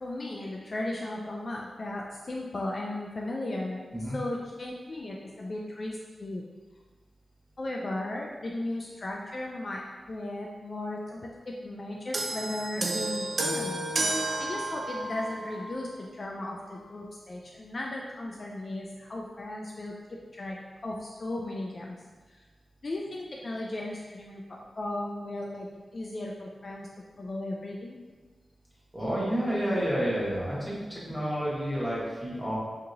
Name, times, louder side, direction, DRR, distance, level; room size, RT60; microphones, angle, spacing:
voice 1, 0.0-6.4 7.6-13.9 14.4-20.6 20.8-22.0 22.3-22.4 22.8-25.7 25.9-26.9 27.2-28.0, left 1 dB, 40° left, -2 dB, 0.4 m, -36 dB
sound 1, 12.1-15.7 16.6-16.8, right 2 dB, 50° right, 0.4 m, -31 dB
voice 2, 28.9-32.6, equal, 5° right, -9 dB, 1.3 m, -30 dB
5.1 x 2.8 x 2.6 m, 1.3 s
wide cardioid pair, 145°, 0 cm